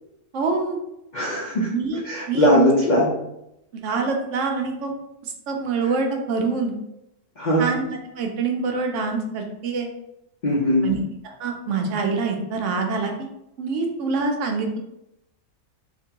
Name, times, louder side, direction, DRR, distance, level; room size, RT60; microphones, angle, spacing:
voice 1, 0.3-0.8 1.7-2.0 2.3-2.7 3.7-5.0 5.5-6.7 7.6-9.9 10.8-10.9 11.2-13.3 13.6-14.8, right 4 dB, 65° right, 3 dB, 0.8 m, -25 dB
voice 2, 1.1-1.7 2.0-3.1 7.4-7.7 10.4-10.9, equal, 60° left, -5 dB, 0.4 m, -20 dB
3.4 x 2.8 x 2.9 m, 0.85 s
omnidirectional pair, 1.6 m